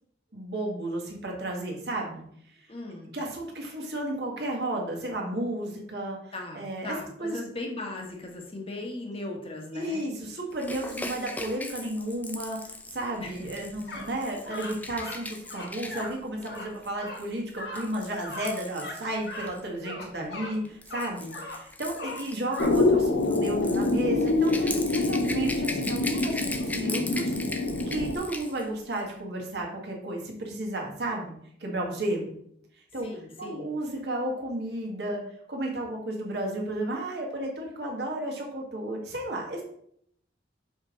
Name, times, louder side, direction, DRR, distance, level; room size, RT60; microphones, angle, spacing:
voice 1, 0.3-2.6 3.1-6.9 7.2-7.4 9.7-27.4 27.8-31.3 31.6-32.3 32.9-33.1 33.4-35.2 35.5-39.6, right 1 dB, 65° right, -1 dB, 1.6 m, -33 dB
voice 2, 2.7-3.1 6.3-10.0 13.2-13.5 33.0-33.7, left 2 dB, 30° left, 1 dB, 1.1 m, -38 dB
Rattle / Rattle (instrument), 10.6-19.6 20.5-28.6 28.9-29.1, left 2 dB, 10° left, 0.5 m, -39 dB
sound 1, 13.9-14.1 14.4-15.2 15.4-16.1 16.4-16.7 17.0-17.2 17.6-17.8 18.2-18.5 18.8-19.0 19.2-19.5 19.8-20.5 20.9-21.6 22.0-22.7, left 2 dB, 65° left, 1.1 m, -38 dB
sound 2, 22.6-28.1, left 2 dB, 80° left, 0.7 m, -26 dB
5.3 x 5.2 x 3.8 m, 0.68 s
head